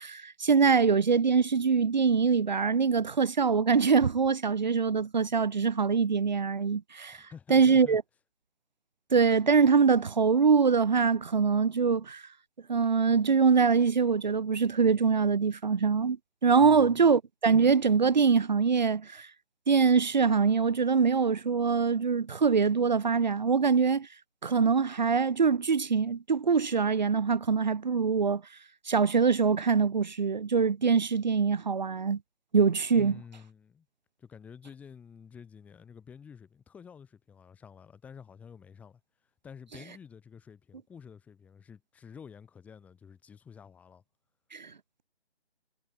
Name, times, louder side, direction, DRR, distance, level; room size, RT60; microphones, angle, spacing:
voice 1, 0.0-7.2 7.5-8.0 9.1-12.2 12.7-16.2 16.4-19.3 19.7-24.1 24.4-28.4 28.8-32.2 32.5-33.2 44.5-44.7, right 5 dB, 40° right, 1.4 m, -24 dB
voice 2, 7.1-8.0 16.6-17.1 33.0-33.9 34.2-39.0 39.4-44.0, left 7 dB, 5° left, 4.2 m, -50 dB
hypercardioid pair, 170°, 34 cm